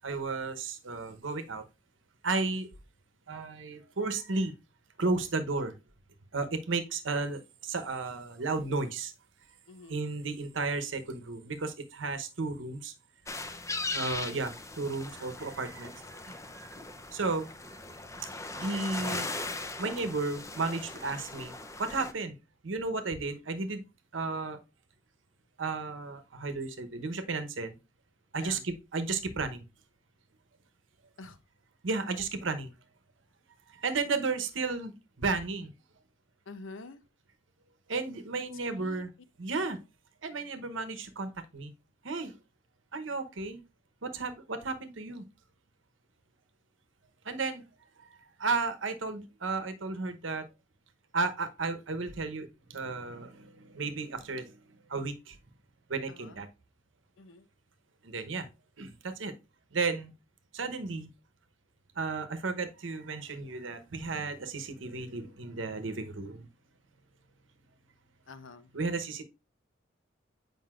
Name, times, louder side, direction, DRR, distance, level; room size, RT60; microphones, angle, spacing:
voice 1, 0.0-1.6 2.2-2.7 3.3-4.5 5.0-5.8 6.3-9.1 9.9-12.9 13.9-16.8 17.1-17.5 18.5-19.3 19.8-21.5 21.8-22.4 22.6-23.8 24.1-24.6 25.6-27.8 28.3-29.6 31.8-32.7 33.7-35.7 37.9-39.1 39.4-39.8 40.2-41.7 42.0-42.4 42.9-43.6 44.0-45.2 47.2-47.6 48.4-50.5 51.1-54.6 54.9-55.4 55.9-56.5 58.0-58.5 58.8-59.3 59.7-60.1 60.5-61.1 62.0-66.5 68.7-69.2, right 3 dB, 75° right, 0.9 m, -33 dB
voice 2, 9.7-10.0 28.3-28.7 31.2-31.4 36.5-37.0 38.7-39.0 39.6-39.7 56.1-56.4 57.2-57.5 68.3-68.7, left 3 dB, 85° left, 0.8 m, -47 dB
sound 1, 13.3-22.1, left 2 dB, 15° left, 0.6 m, -39 dB
7.6 x 5.3 x 2.4 m
head